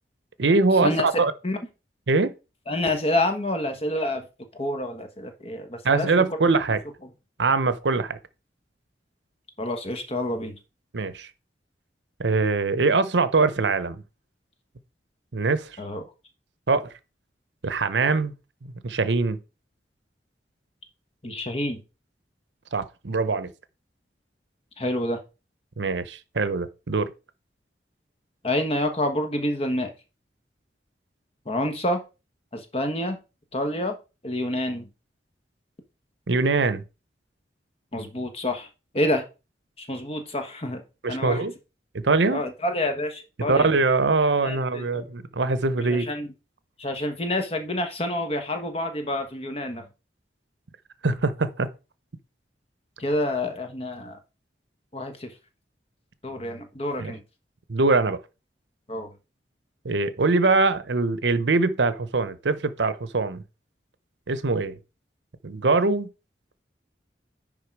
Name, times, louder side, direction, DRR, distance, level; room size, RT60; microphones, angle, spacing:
voice 1, 0.4-1.3 2.1-2.3 5.8-6.8 7.4-8.2 10.9-11.3 12.2-14.0 15.3-15.8 16.7-16.9 17.6-18.3 18.6-19.4 22.7-23.5 25.8-27.1 36.3-36.8 41.0-41.5 42.0-42.4 43.5-46.1 51.0-51.7 57.0-57.1 57.7-58.2 59.8-63.4 64.3-64.8 65.4-66.1, right 3 dB, 80° right, 0.8 m, -23 dB
voice 2, 2.7-4.2 4.6-6.4 9.6-10.6 15.8-16.0 21.2-21.8 24.8-25.2 28.4-29.9 31.4-32.0 32.5-33.2 33.5-34.0 34.2-34.9 37.9-38.7 38.9-39.2 39.8-40.8 41.1-41.4 42.3-43.7 44.4-45.0 45.8-46.3 46.8-49.8 53.0-54.2 54.9-55.3 56.2-57.2 58.9-59.1, left 1 dB, 35° left, 1.3 m, -28 dB
10.0 x 3.8 x 4.7 m
head